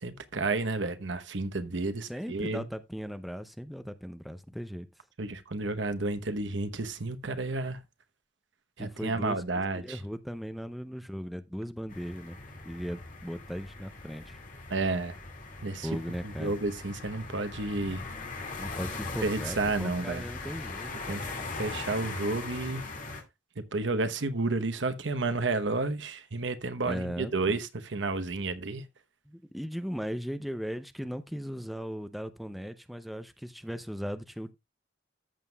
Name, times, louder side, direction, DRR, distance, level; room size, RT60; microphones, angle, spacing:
voice 1, 0.0-2.6 5.2-7.8 8.8-10.0 14.7-15.1 15.6-15.9 16.4-18.0 19.2-20.2 21.1-21.2 21.6-22.8 23.7-28.8, right 3 dB, 75° right, 1.0 m, -31 dB
voice 2, 2.0-4.9 8.8-12.4 12.6-14.4 15.8-16.6 18.6-21.2 26.8-27.6 29.3-34.5, equal, ahead, 0.5 m, -38 dB
sound 1, 11.9-23.2, left 3 dB, 45° left, 2.2 m, -40 dB
14.0 x 7.2 x 2.3 m
head